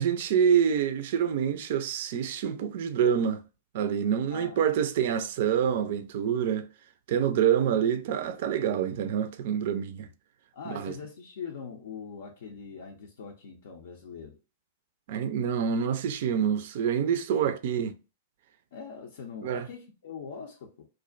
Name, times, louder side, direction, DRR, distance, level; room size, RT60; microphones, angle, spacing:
voice 1, 0.0-3.4 3.7-6.7 7.1-10.1 10.7-10.9 15.1-17.9 19.4-19.7, right 8 dB, 60° right, 0.3 m, -26 dB
voice 2, 4.3-4.7 10.5-14.4 17.3-17.5 18.7-20.9, left 6 dB, 70° left, 0.4 m, -42 dB
2.4 x 2.1 x 2.4 m
hypercardioid pair, 110°, 0 cm